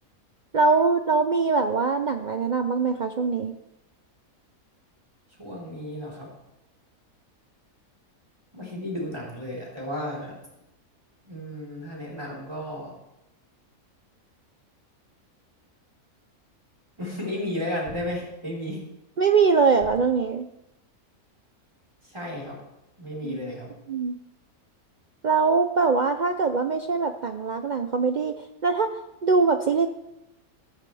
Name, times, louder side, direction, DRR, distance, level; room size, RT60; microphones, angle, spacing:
voice 1, 0.5-3.5 19.2-20.5 23.2-23.4 23.9-24.2 25.2-28.4 28.6-28.9 29.2-29.9, right 4 dB, 70° right, 7 dB, 0.4 m, -22 dB
voice 2, 5.4-6.3 8.5-10.4 11.2-12.9 17.0-18.8 22.0-22.6 23.0-23.7, left 1 dB, 20° right, -4 dB, 4.2 m, -33 dB
sound 1, 17.8-18.7 19.8-20.5, equal, 20° left, 3.3 m, -46 dB
14.0 x 13.5 x 3.4 m, 0.90 s
omnidirectional pair, 1.5 m